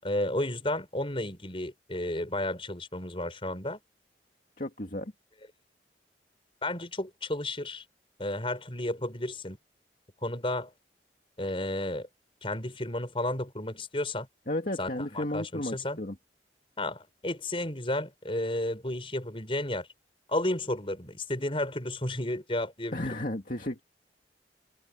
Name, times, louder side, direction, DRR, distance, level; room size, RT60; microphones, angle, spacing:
voice 1, 0.0-3.8 6.6-7.8 8.2-9.6 10.2-10.7 11.4-12.1 12.4-14.3 14.8-16.0 16.8-19.9 20.3-23.1, left 1 dB, 30° left, 6.3 m, -32 dB
voice 2, 4.6-5.1 14.5-16.2 22.9-23.8, left 1 dB, 50° left, 2.4 m, -33 dB
head